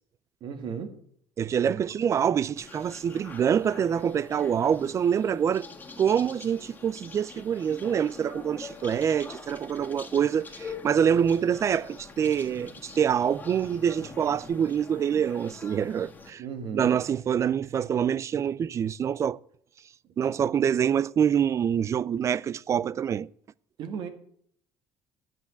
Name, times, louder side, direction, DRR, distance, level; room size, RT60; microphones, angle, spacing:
voice 1, 0.4-1.0 1.6-1.8 16.4-17.0 23.8-24.1, right 6 dB, 60° right, 2.0 m, -35 dB
voice 2, 1.4-5.7 6.0-16.4 16.7-19.4 20.2-23.3, right 8 dB, 35° right, 0.4 m, -26 dB
sound 1, 2.6-16.3, left 4 dB, 20° left, 1.8 m, -45 dB
10.5 x 7.5 x 7.1 m
cardioid pair, 130°, 9 cm